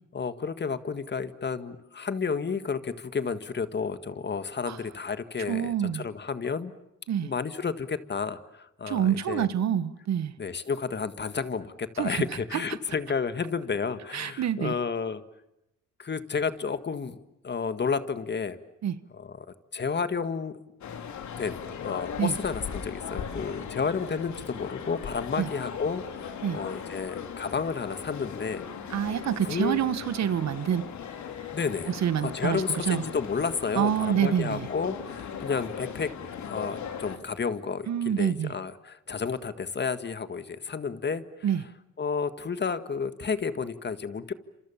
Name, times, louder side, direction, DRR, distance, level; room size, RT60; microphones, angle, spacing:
voice 1, 0.1-6.7 7.2-9.5 10.4-15.2 16.0-17.2 17.4-18.6 19.2-19.5 19.7-20.5 21.4-29.1 29.4-29.8 31.5-31.9 32.2-41.2 42.0-44.3, left 5 dB, 35° left, 11 dB, 1.8 m, -31 dB
voice 2, 5.5-6.1 7.1-7.3 8.9-10.3 12.0-12.2 14.1-14.7 18.8-19.0 22.2-22.4 25.4-25.5 26.4-26.6 28.9-30.9 31.9-33.0 33.8-34.7 37.9-38.5 41.4-41.6, right 9 dB, 65° right, 14 dB, 1.4 m, -27 dB
sound 1, 20.8-37.2, left 7 dB, 70° left, 3.6 m, -38 dB
29.5 x 27.0 x 7.3 m, 0.85 s
cardioid pair, 90°, 30 cm